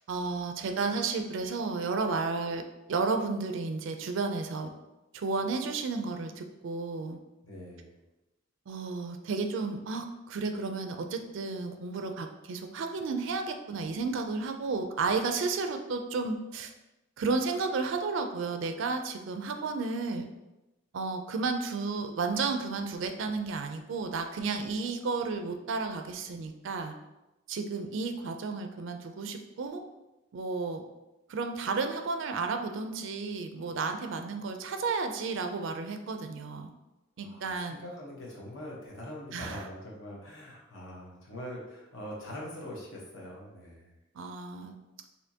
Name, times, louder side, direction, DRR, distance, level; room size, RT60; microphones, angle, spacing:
voice 1, 0.1-2.6 2.9-4.7 5.1-7.2 8.7-16.7 17.2-20.3 20.9-26.9 27.5-29.8 30.3-30.8 31.3-36.7 37.2-37.8 39.3-39.7 44.2-44.8, right 4 dB, 70° right, 6 dB, 0.4 m, -32 dB
voice 2, 7.4-7.9 37.2-43.9, equal, 80° left, -4 dB, 1.0 m, -43 dB
4.2 x 2.8 x 2.8 m, 0.98 s
head